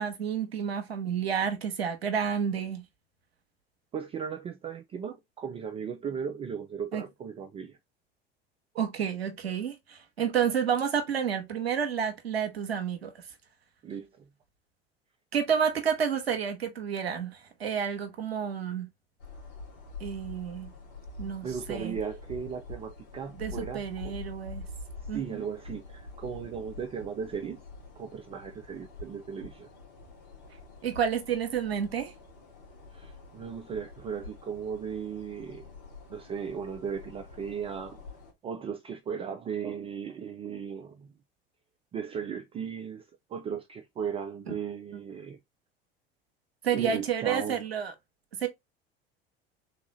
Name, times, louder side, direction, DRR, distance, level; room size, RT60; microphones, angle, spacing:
voice 1, 0.0-2.8 6.9-7.0 8.7-13.1 15.3-18.9 20.0-20.7 21.2-21.9 23.3-24.6 25.1-25.4 30.8-32.1 44.5-44.6 46.6-47.9 48.4-48.5, right 7 dB, 75° right, 0.9 m, -30 dB
voice 2, 3.9-7.8 13.8-14.1 21.4-24.1 25.1-27.6 28.0-29.7 32.9-35.7 36.1-38.0 38.4-41.1 41.9-45.4 46.7-47.6, right 7 dB, 20° right, 0.4 m, -36 dB
sound 1, 19.2-38.3, left 3 dB, 60° left, 1.9 m, -46 dB
3.5 x 2.9 x 4.0 m
figure-of-eight pair, 70°, 31 cm